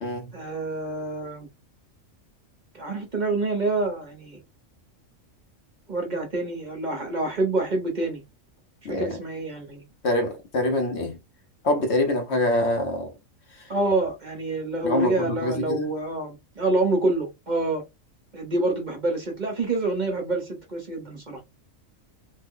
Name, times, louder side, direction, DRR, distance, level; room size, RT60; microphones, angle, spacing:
voice 1, 0.3-1.5 2.7-4.4 5.9-8.2 8.9-9.8 13.7-17.8 18.3-21.4, right 2 dB, 40° right, 1.0 m, -27 dB
voice 2, 8.8-9.2 10.0-11.2 11.6-13.1 14.8-15.8, left 1 dB, 60° left, 1.0 m, -25 dB
3.2 x 2.1 x 3.6 m
omnidirectional pair, 1.4 m